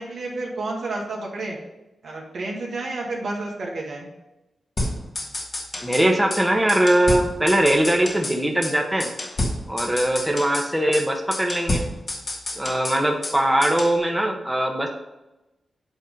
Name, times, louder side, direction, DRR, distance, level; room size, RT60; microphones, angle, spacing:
voice 1, 0.0-1.6 2.0-4.1, right 2 dB, 70° right, -1 dB, 1.8 m, -30 dB
sound 1, 4.8-6.0 6.3-6.4 6.7-8.4 8.6-8.7 9.0-10.7 10.9-11.0 11.3-13.4 13.6-14.0, left 1 dB, 50° left, 1.6 m, -29 dB
voice 2, 5.8-9.1 9.7-11.9 12.6-14.9, right 1 dB, 10° right, 1 dB, 1.3 m, -21 dB
8.3 x 3.6 x 5.2 m, 0.98 s
supercardioid pair, 40°, 0 cm